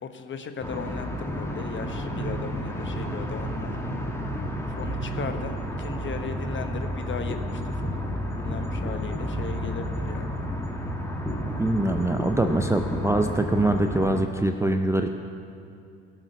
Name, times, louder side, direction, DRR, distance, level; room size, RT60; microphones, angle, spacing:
voice 1, 0.0-3.8 4.8-8.0 8.4-10.3, left 5 dB, 35° left, 7 dB, 1.1 m, -37 dB
sound 1, 0.6-14.2, equal, 10° left, 1.5 m, -31 dB
voice 2, 11.6-15.1, right 2 dB, 10° right, 5 dB, 0.5 m, -24 dB
17.0 x 6.3 x 5.3 m, 2.6 s
hypercardioid pair, 60°, 34 cm